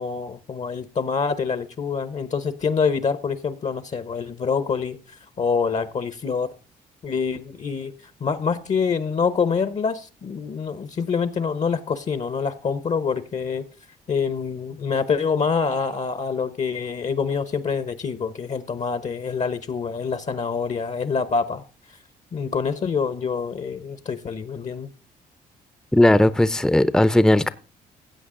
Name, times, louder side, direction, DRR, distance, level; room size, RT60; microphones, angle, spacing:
voice 1, 0.0-5.0 5.4-6.5 7.0-7.9 8.2-13.7 14.1-21.6 22.3-24.9, left 5 dB, 45° left, 0.9 m, -26 dB
voice 2, 25.9-27.5, left 1 dB, 5° left, 0.6 m, -17 dB
15.5 x 8.0 x 3.8 m
supercardioid pair, 65°, 17 cm